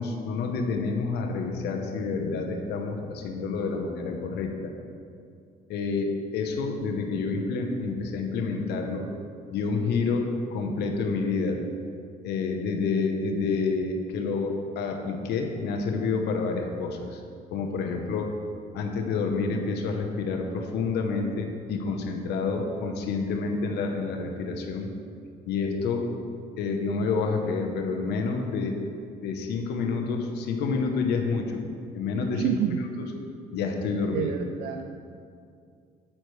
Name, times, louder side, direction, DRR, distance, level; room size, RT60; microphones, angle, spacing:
voice 1, 0.0-4.7 5.7-9.1 9.5-11.6 12.2-17.2 17.5-18.3 18.7-24.9 25.5-26.1 26.6-28.8 29.2-31.6 31.9-32.5 33.0-33.1 33.5-34.3, left 4 dB, 80° left, 3 dB, 0.9 m, -28 dB
voice 2, 32.3-32.8 34.1-35.1, right 9 dB, 65° right, 6 dB, 0.4 m, -29 dB
8.8 x 8.6 x 3.3 m, 2.3 s
cardioid pair, 110°, 17 cm